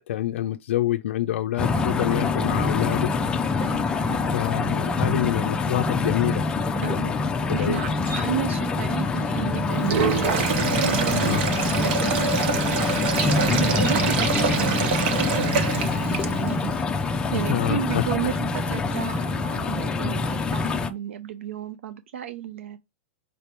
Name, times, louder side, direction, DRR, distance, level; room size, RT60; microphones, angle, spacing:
voice 1, 0.1-3.1 4.3-6.5 6.8-7.1 7.5-7.8 11.3-11.4 17.3-18.1, left 13 dB, 80° left, 0.4 m, -27 dB
sound 1, 1.6-20.9, left 3 dB, 15° left, 0.4 m, -25 dB
voice 2, 3.6-4.2 6.8-7.1 7.5-10.4 10.7-11.4 11.8-12.8 13.5-22.8, right 10 dB, 85° right, 0.4 m, -33 dB
sound 2, 7.7-20.7, right 2 dB, 25° right, 1.2 m, -43 dB
Sink (filling or washing), 9.7-16.6, right 5 dB, 60° right, 0.8 m, -25 dB
5.0 x 2.9 x 3.3 m
supercardioid pair, 140°, 6 cm